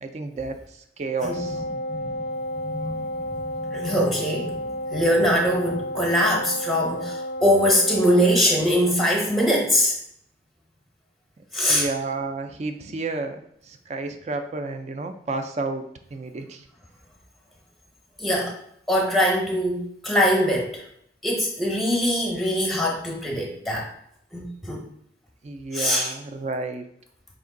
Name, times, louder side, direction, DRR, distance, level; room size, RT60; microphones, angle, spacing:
voice 1, 0.0-1.6 11.7-16.7 25.4-26.9, right 3 dB, 40° right, 7 dB, 0.4 m, -31 dB
Wind instrument woodwind instrument, 1.2-8.5, left 1 dB, 70° left, 0.4 m, -32 dB
voice 2, 2.6-10.0 11.5-11.9 18.2-18.5 18.9-20.8 21.2-23.9 24.3-24.9 25.7-26.1, equal, ahead, -1 dB, 0.7 m, -22 dB
4.6 x 2.6 x 3.7 m, 0.71 s
head